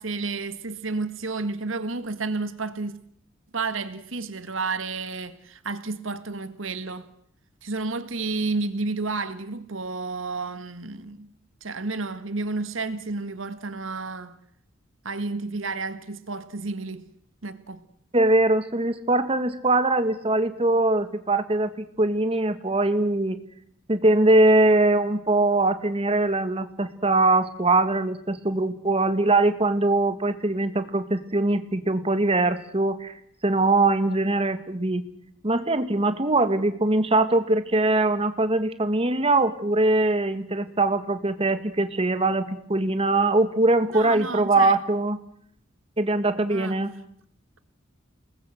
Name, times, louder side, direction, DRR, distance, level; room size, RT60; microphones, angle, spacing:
voice 1, 0.0-3.0 3.5-7.1 7.6-11.3 11.6-14.4 15.0-17.1 17.4-17.8 43.9-44.8 46.5-46.8, right 3 dB, 80° right, 1.8 m, -31 dB
voice 2, 18.1-23.4 23.9-33.1 33.4-35.0 35.4-45.2 46.0-46.9, right 2 dB, 30° right, 1.8 m, -22 dB
28.5 x 20.0 x 7.8 m
head